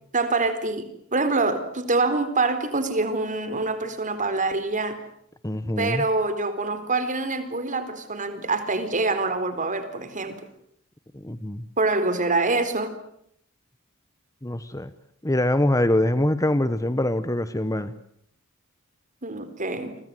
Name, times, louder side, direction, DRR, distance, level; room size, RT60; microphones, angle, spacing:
voice 1, 0.1-5.0 5.8-10.4 11.8-13.0 19.2-20.0, right 3 dB, 40° right, 10 dB, 4.1 m, -25 dB
voice 2, 5.4-6.1 11.1-11.6 14.4-14.9 15.2-17.9, left 1 dB, 15° left, 13 dB, 1.1 m, -24 dB
29.5 x 24.0 x 7.8 m, 0.70 s
head